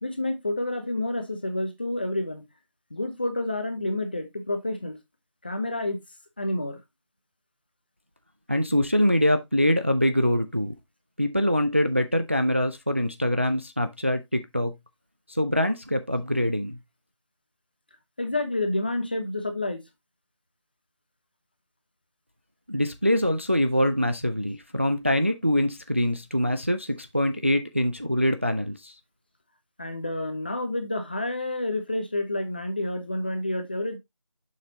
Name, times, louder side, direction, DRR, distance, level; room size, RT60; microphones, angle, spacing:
voice 1, 0.0-2.4 2.9-5.0 5.4-6.0 6.4-6.8 18.2-19.8 29.8-34.0, left 1 dB, 20° left, 0.8 m, -29 dB
voice 2, 8.5-10.7 11.2-14.7 15.3-16.8 22.7-29.0, equal, 25° right, 0.4 m, -24 dB
6.6 x 6.5 x 2.7 m
figure-of-eight pair, 170°, 16 cm